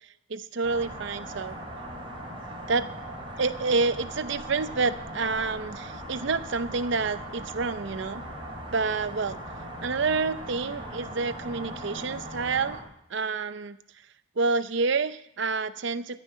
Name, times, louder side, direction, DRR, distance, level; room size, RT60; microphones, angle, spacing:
voice 1, 0.3-1.6 2.7-2.9 3.4-8.2 8.7-9.4 9.8-12.8 13.1-13.8 14.4-16.2, right 4 dB, 60° right, 13 dB, 0.6 m, -28 dB
sound 1, 0.6-12.8, right 1 dB, 25° right, 2.9 m, -39 dB
14.0 x 5.6 x 9.2 m, 0.74 s
head